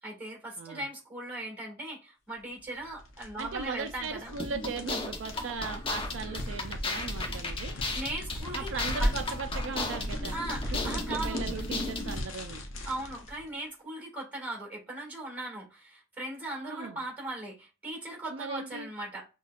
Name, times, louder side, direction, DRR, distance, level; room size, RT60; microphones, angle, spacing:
voice 1, 0.0-4.3 7.7-8.7 9.0-9.1 10.3-11.5 12.8-19.3, right 2 dB, 10° right, -1 dB, 2.0 m, -38 dB
sound 1, 2.8-13.4, equal, 75° left, 0.7 m, -37 dB
voice 2, 3.4-7.7 8.5-10.4 10.7-12.6 16.6-17.0 18.3-18.9, right 5 dB, 65° right, 7 dB, 0.4 m, -38 dB
sound 2, 4.4-12.2, left 3 dB, 25° left, 0.6 m, -35 dB
5.8 x 2.3 x 2.4 m, 0.30 s
head